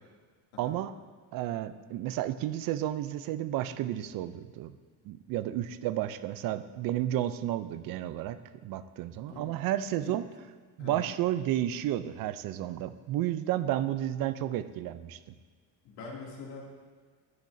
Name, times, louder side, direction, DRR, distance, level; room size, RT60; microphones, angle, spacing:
voice 1, 0.6-0.9 1.3-4.8 5.0-8.4 8.6-10.2 10.8-15.3, right 12 dB, 55° right, 12 dB, 0.5 m, -32 dB
voice 2, 10.8-11.1 15.8-16.6, left 4 dB, 80° left, -3 dB, 2.7 m, -43 dB
12.5 x 10.5 x 2.7 m, 1.5 s
cardioid pair, 170°, 41 cm